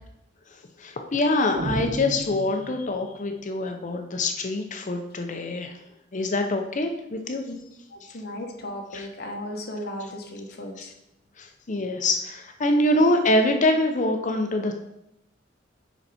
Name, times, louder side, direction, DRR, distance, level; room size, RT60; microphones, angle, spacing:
voice 1, 0.8-5.7 6.1-7.4 8.9-9.1 10.8-10.9 11.4-14.7, left 1 dB, 40° left, 4 dB, 0.7 m, -24 dB
sound 1, 1.6-3.2, right 2 dB, 45° right, 0.6 m, -32 dB
voice 2, 7.9-10.9, left 1 dB, 55° left, 2 dB, 1.2 m, -36 dB
7.0 x 5.5 x 4.3 m, 0.86 s
head